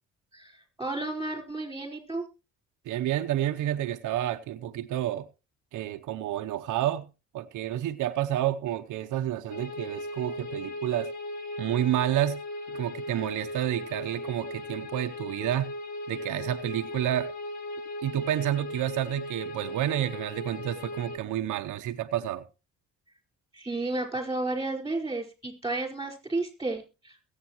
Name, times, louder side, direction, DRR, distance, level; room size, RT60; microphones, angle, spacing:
voice 1, 0.8-2.2 23.5-27.2, right 2 dB, 10° right, 5.0 m, -32 dB
voice 2, 2.9-5.3 5.7-7.1 7.3-11.1 11.6-12.4 12.7-15.7 16.1-17.3 18.0-22.4, right 12 dB, 80° right, 0.8 m, -29 dB
sound 1, 9.5-21.2, left 1 dB, 65° left, 2.1 m, -38 dB
22.0 x 8.3 x 3.0 m
cardioid pair, 90°, 30 cm